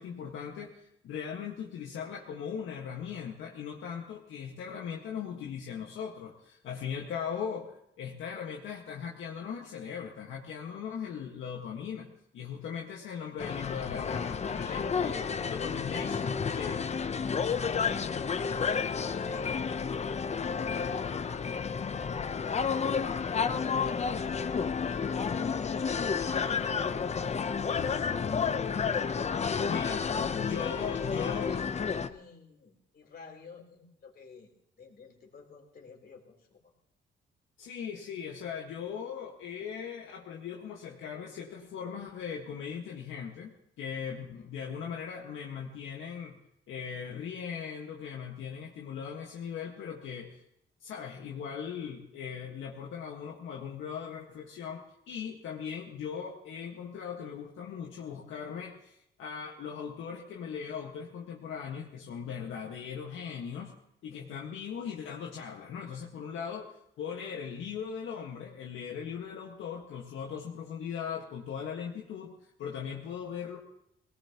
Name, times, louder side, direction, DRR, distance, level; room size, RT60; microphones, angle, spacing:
voice 1, 0.0-16.8 29.6-30.0 30.3-31.5 37.6-43.5 43.8-46.4 46.7-50.4 50.8-63.7 64.0-73.6, left 7 dB, 80° left, -1 dB, 1.7 m, -39 dB
sound 1, 13.4-32.1, left 6 dB, 35° left, 0.8 m, -31 dB
voice 2, 14.5-14.8 15.2-15.6 16.4-16.9 17.4-22.7 24.7-28.5 29.0-30.9 31.2-34.5 34.8-36.6 44.1-44.5 64.1-64.5, left 4 dB, 50° left, 1 dB, 3.7 m, -50 dB
21.5 x 18.5 x 3.0 m, 0.75 s
cardioid pair, 90°, 20 cm